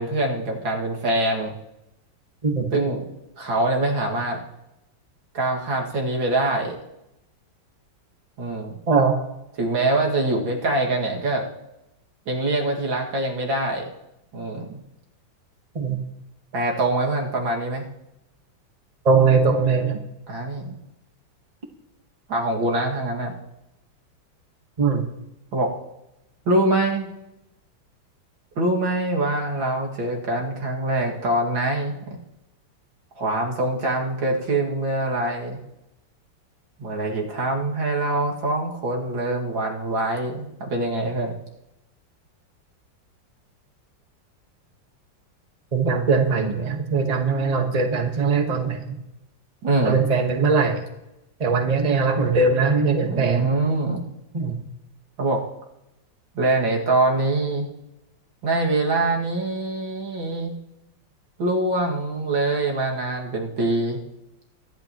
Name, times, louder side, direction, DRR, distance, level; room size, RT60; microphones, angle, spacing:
voice 1, 0.0-1.5 2.7-3.1 3.4-4.4 5.3-6.8 8.4-8.8 9.6-11.5 12.3-13.9 14.3-14.8 16.5-17.9 20.3-20.8 22.3-23.3 25.5-25.7 26.5-27.1 28.6-32.2 33.2-35.6 36.8-41.3 49.6-50.0 53.1-54.0 55.2-55.4 56.3-57.7 58.4-60.6 61.4-64.0, right 2 dB, 80° right, -1 dB, 2.9 m, -24 dB
voice 2, 19.0-20.0 24.8-25.0 45.7-49.0 49.8-50.8 51.4-53.5 54.3-54.6, right 4 dB, 25° right, 4 dB, 1.2 m, -20 dB
23.5 x 11.5 x 3.0 m, 0.90 s
omnidirectional pair, 2.1 m